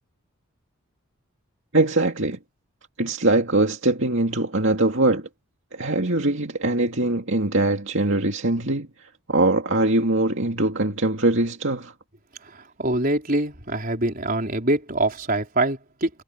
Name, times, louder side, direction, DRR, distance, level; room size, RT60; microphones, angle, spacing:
voice 1, 1.7-2.4 3.0-5.3 5.7-11.9, right 2 dB, 60° right, 2.4 m, -22 dB
voice 2, 12.5-16.1, right 2 dB, 40° right, 4.7 m, -24 dB
head